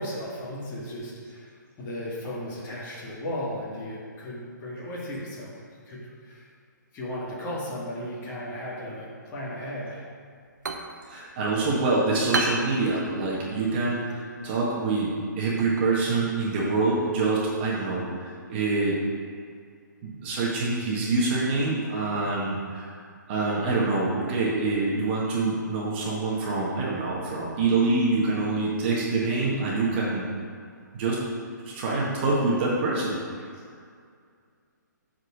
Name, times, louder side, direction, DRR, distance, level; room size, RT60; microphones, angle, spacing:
voice 1, 0.0-1.5 1.8-6.4 6.9-10.1, equal, 20° left, -6 dB, 2.2 m, -35 dB
sound 1, 10.3-17.8, right 3 dB, 65° right, 1.0 m, -37 dB
voice 2, 11.1-19.0 20.0-22.9 23.3-30.3 30.9-31.2 31.6-33.2, right 3 dB, 30° right, -5 dB, 1.7 m, -26 dB
7.8 x 4.8 x 6.3 m, 2.2 s
figure-of-eight pair, 135°, 10 cm